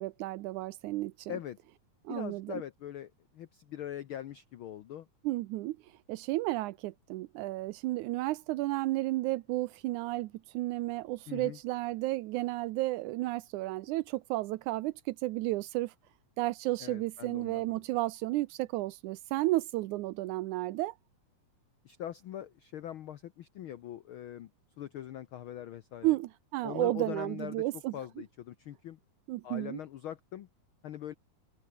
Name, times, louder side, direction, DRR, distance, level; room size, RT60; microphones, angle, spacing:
voice 1, 0.0-1.3 2.1-2.6 5.2-5.8 6.1-15.9 16.4-20.9 26.0-27.9 29.3-29.8, right 18 dB, 85° right, 2.1 m, -32 dB
voice 2, 2.1-5.1 11.3-11.6 16.8-17.8 21.8-24.5 24.8-26.1 26.6-29.0 29.4-30.5 30.8-31.1, left 11 dB, 85° left, 1.1 m, -42 dB
open air
omnidirectional pair, 3.5 m